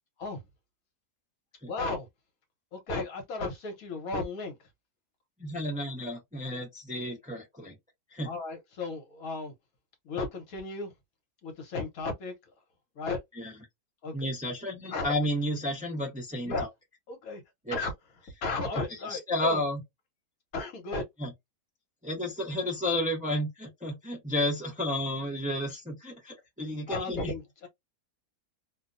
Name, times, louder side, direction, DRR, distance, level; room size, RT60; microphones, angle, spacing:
voice 1, 1.6-2.1 2.7-4.6 8.2-9.5 10.0-10.9 11.4-12.3 13.0-13.2 14.0-14.1 14.9-15.1 16.4-16.7 17.1-17.4 17.7-17.9 18.4-19.6 20.5-21.0 26.9-27.7, left 3 dB, 70° left, 1.3 m, -34 dB
voice 2, 5.4-7.7 8.1-8.3 13.4-13.5 14.1-16.7 17.7-17.8 19.1-19.8 21.2-21.3 22.0-27.3, left 1 dB, 5° right, 0.7 m, -32 dB
2.7 x 2.2 x 2.5 m
omnidirectional pair, 1.6 m